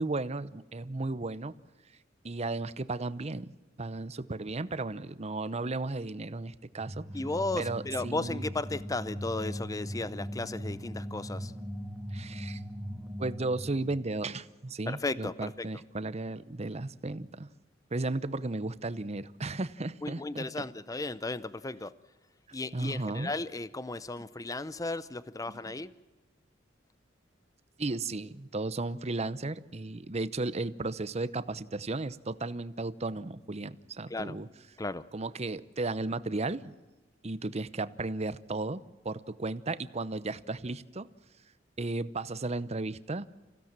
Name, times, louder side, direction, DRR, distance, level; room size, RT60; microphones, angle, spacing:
voice 1, 0.0-1.5 2.2-7.1 7.6-8.4 12.1-12.6 13.2-17.5 17.9-20.5 22.7-23.3 25.5-25.6 27.8-34.5 35.1-36.7 37.2-41.1 41.8-43.3, right 2 dB, 35° right, 0.8 m, -34 dB
sound 1, 6.7-14.1, equal, ahead, 1.8 m, -40 dB
voice 2, 7.1-11.5 14.9-15.7 20.0-21.9 22.5-25.9 34.1-34.3 34.8-35.0, left 2 dB, 20° left, 0.6 m, -35 dB
27.0 x 16.0 x 7.5 m
head